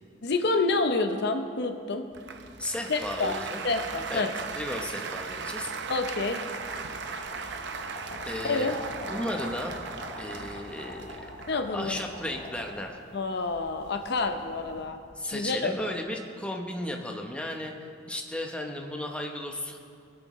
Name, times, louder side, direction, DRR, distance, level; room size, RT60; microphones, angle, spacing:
voice 1, 0.2-2.1 2.9-3.4 3.6-4.3 5.9-6.4 8.4-8.8 11.5-12.0 13.1-15.0 15.3-15.9, left 3 dB, 60° left, 6 dB, 0.7 m, -28 dB
Applause, 2.1-12.7, right 5 dB, 60° right, 0.6 m, -38 dB
voice 2, 2.6-3.6 4.1-4.3 4.5-5.7 8.2-8.7 9.1-9.7 10.2-11.2 11.7-13.0 15.2-17.7 18.1-19.8, left 1 dB, 5° left, 2 dB, 0.8 m, -34 dB
sound 1, 6.3-14.8, left 1 dB, 40° left, 3.4 m, -44 dB
21.0 x 8.1 x 3.1 m, 2.3 s
head